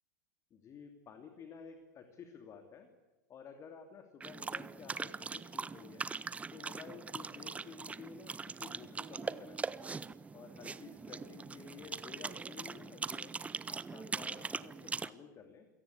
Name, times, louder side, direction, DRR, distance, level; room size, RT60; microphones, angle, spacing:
voice 1, 0.5-2.9 3.3-6.1 6.5-9.8 10.3-13.4 13.7-15.7, left 6 dB, 30° left, 6 dB, 2.7 m, -52 dB
sound 1, 4.2-15.1, right 4 dB, 15° right, 0.8 m, -41 dB
28.5 x 18.0 x 8.5 m, 1.2 s
figure-of-eight pair, 90°, 10 cm